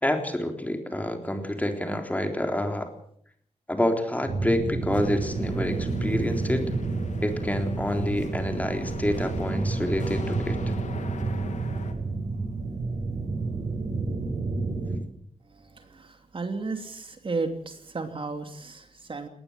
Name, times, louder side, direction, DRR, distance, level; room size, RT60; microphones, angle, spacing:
voice 1, 0.0-2.9 3.7-6.7 7.2-10.6, left 1 dB, 10° left, 5 dB, 3.7 m, -28 dB
sound 1, 4.3-15.0, right 3 dB, 65° right, 4.6 m, -30 dB
sound 2, 4.9-11.9, left 5 dB, 70° left, 3.0 m, -43 dB
voice 2, 15.5-19.3, right 3 dB, 45° right, 6 dB, 2.9 m, -34 dB
20.5 x 19.0 x 7.6 m, 0.65 s
wide cardioid pair, 110°, 13 cm